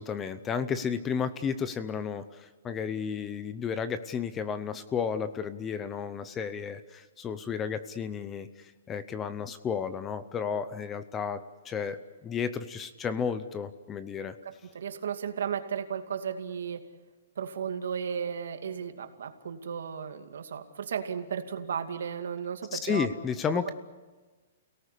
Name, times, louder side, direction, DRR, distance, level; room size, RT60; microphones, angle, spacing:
voice 1, 0.0-14.4 22.7-23.7, left 6 dB, 15° left, 13 dB, 0.7 m, -33 dB
voice 2, 14.4-16.8 17.4-23.1, right 7 dB, 75° right, 6 dB, 2.4 m, -34 dB
29.0 x 18.0 x 8.4 m, 1.3 s
hypercardioid pair, 170°, 0 cm